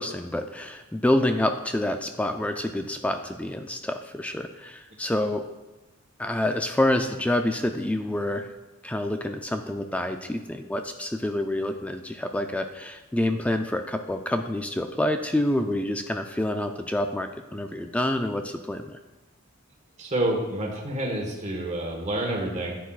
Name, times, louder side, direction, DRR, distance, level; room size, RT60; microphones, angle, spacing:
voice 1, 0.0-5.4 6.2-8.5 8.8-19.0, left 1 dB, 5° left, 6 dB, 0.3 m, -27 dB
voice 2, 20.0-22.8, right 1 dB, 35° right, -1 dB, 1.4 m, -28 dB
9.9 x 9.4 x 2.4 m, 1.1 s
head